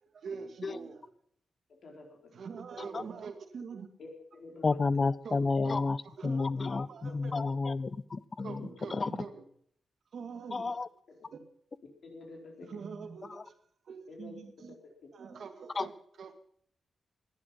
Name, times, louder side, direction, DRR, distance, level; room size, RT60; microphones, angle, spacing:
voice 1, 0.1-1.1 2.3-3.9 5.2-5.8 6.0-6.5 6.9-7.5 8.4-9.4 10.1-10.7 11.3-11.5 12.6-13.6 13.9-14.8 15.1-15.9 16.2-16.3, right 5 dB, 60° right, 7 dB, 2.1 m, -44 dB
voice 2, 4.0-4.8 6.6-6.7 7.1-7.2 8.6-9.2 11.1-11.2 12.0-12.7 14.1-14.4, left 3 dB, 55° left, 1 dB, 4.3 m, -48 dB
voice 3, 4.6-6.0 6.2-8.6 8.9-9.1 10.5-10.9 15.8-15.9, left 3 dB, 30° left, 18 dB, 0.7 m, -30 dB
19.0 x 11.5 x 5.5 m, 0.62 s
wide cardioid pair, 155°, 0 cm